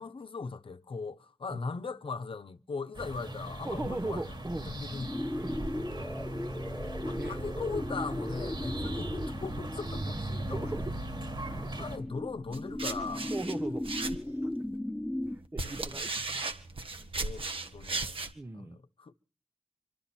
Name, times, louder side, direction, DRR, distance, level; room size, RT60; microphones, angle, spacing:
voice 1, 0.0-4.3 4.6-5.2 7.0-10.7 11.6-13.3 15.6-16.4 17.1-17.5 17.7-18.2 18.5-19.1, left 4 dB, 70° left, 0.8 m, -39 dB
sound 1, 2.9-12.0, right 1 dB, 55° right, 2.4 m, -38 dB
voice 2, 3.6-4.7 5.4-5.6 7.0-7.4 8.7-8.9 10.4-10.9 11.4-11.8 13.3-14.5 15.3-16.4 16.9-17.1 18.3-18.8, right 2 dB, 25° right, 0.7 m, -39 dB
sound 2, 4.9-15.4, left 1 dB, 10° left, 1.2 m, -37 dB
sound 3, 12.5-14.5 15.2-18.3, right 3 dB, 75° right, 1.4 m, -36 dB
26.0 x 12.5 x 4.3 m
wide cardioid pair, 80°, 9 cm